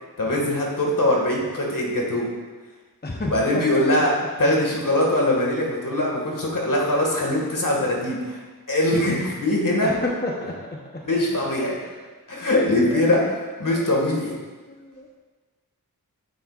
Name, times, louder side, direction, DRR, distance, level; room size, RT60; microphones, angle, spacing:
voice 1, 0.2-2.3 3.3-4.1 4.4-8.4 8.7-9.9 11.0-11.8 12.3-14.4, left 1 dB, 60° left, -2 dB, 2.0 m, -22 dB
voice 2, 3.0-4.0 9.8-10.5 11.8-12.0 12.4-12.5 12.9-13.0 13.7-13.9 14.7-15.2, left 2 dB, 25° left, -1 dB, 1.0 m, -31 dB
10.0 x 7.7 x 2.5 m, 1.3 s
wide cardioid pair, 60°, 36 cm